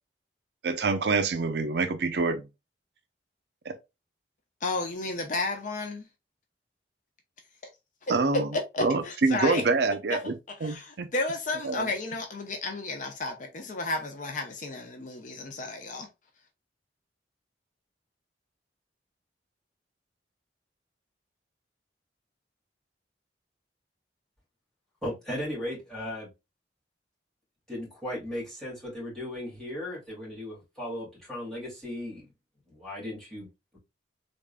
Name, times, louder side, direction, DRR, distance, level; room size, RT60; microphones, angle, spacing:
voice 1, 0.6-2.4 3.7-3.8 8.1-8.5 8.8-10.3 10.6-11.1 11.6-11.9, right 3 dB, 65° right, 0.5 m, -26 dB
voice 2, 4.6-6.1 8.3-9.6 10.1-10.2 10.5-16.1, left 2 dB, 45° left, 0.6 m, -32 dB
voice 3, 25.0-26.3 27.7-32.3 32.7-33.5, left 1 dB, 5° left, 2.3 m, -36 dB
3.6 x 3.6 x 2.2 m
head